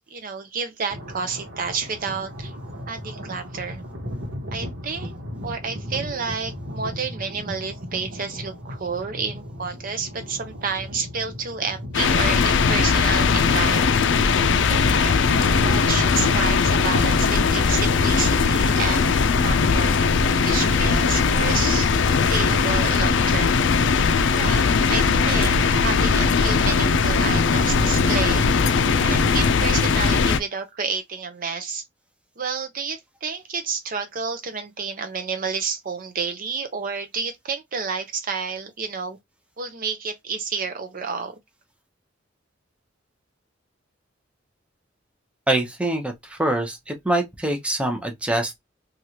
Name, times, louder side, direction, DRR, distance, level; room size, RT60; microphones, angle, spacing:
voice 1, 0.1-2.5 2.9-3.8 4.5-5.2 5.4-13.8 14.7-15.2 15.6-19.9 20.4-21.9 22.3-23.6 24.4-28.5 29.0-31.8 32.4-39.2 39.6-41.4, right 5 dB, 45° right, 0.6 m, -30 dB
sound 1, 0.9-16.4, equal, 65° right, 1.0 m, -36 dB
sound 2, 11.9-30.4, left 5 dB, 65° left, 0.4 m, -19 dB
voice 2, 45.5-48.6, right 1 dB, 5° right, 0.7 m, -24 dB
3.2 x 2.4 x 2.8 m
head